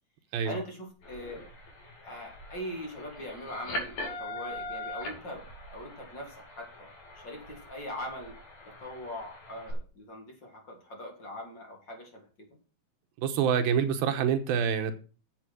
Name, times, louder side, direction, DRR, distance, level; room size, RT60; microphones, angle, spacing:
voice 1, 0.4-1.4 2.0-6.9 7.2-8.4 8.7-12.5, equal, 30° left, 1 dB, 3.7 m, -41 dB
sound 1, 1.0-9.7, left 1 dB, 50° left, 3.7 m, -42 dB
voice 2, 13.2-14.9, right 7 dB, 80° right, 7 dB, 2.9 m, -26 dB
9.0 x 7.8 x 6.2 m, 0.36 s
omnidirectional pair, 4.2 m